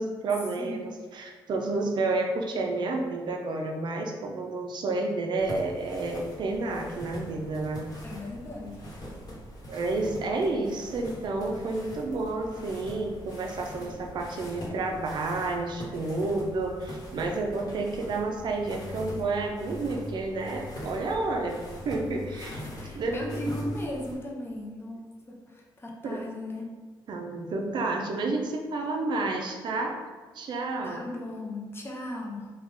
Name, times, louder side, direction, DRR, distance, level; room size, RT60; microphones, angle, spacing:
voice 1, 0.0-7.9 9.7-22.6 22.9-23.4 26.0-26.2 27.1-30.0 30.3-31.0, right 2 dB, 55° right, 2 dB, 0.5 m, -30 dB
sound 1, 5.4-24.1, equal, 45° left, 1.1 m, -42 dB
voice 2, 8.0-8.8 22.3-26.6 30.8-32.5, left 1 dB, 25° left, -1 dB, 0.6 m, -37 dB
3.4 x 2.3 x 3.5 m, 1.4 s
cardioid pair, 115°, 9 cm